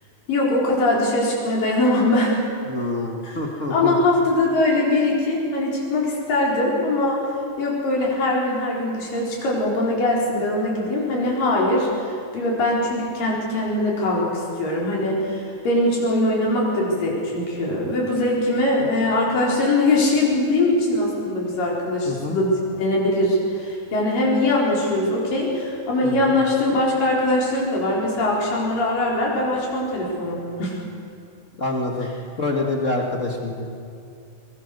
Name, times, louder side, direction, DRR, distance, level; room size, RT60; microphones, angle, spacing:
voice 1, 0.3-2.4 3.2-3.4 3.7-7.2 7.6-30.7, left 1 dB, 75° left, -4 dB, 6.0 m, -22 dB
voice 2, 2.7-3.9 22.0-22.4 26.0-26.3 31.6-32.1 32.4-33.7, left 2 dB, 45° left, 0 dB, 0.9 m, -26 dB
22.0 x 22.0 x 6.6 m, 2.4 s
omnidirectional pair, 4.0 m